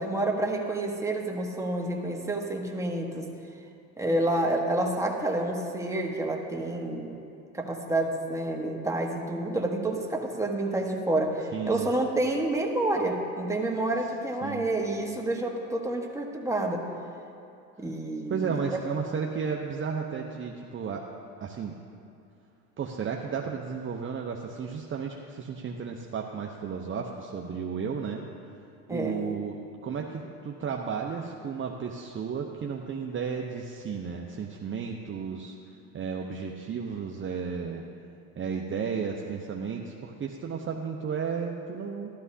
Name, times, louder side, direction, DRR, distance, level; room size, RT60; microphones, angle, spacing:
voice 1, 0.0-3.3 4.0-7.1 7.5-16.8 17.8-18.5 28.9-29.2, right 1 dB, 5° right, 0 dB, 1.4 m, -29 dB
voice 2, 11.5-11.9 14.4-14.7 18.3-21.0 21.4-21.7 22.8-28.2 28.9-29.5 29.8-35.5 35.9-37.8 38.4-42.1, right 6 dB, 30° right, 0 dB, 0.8 m, -33 dB
13.5 x 12.5 x 2.8 m, 2.6 s
supercardioid pair, 80°, 40 cm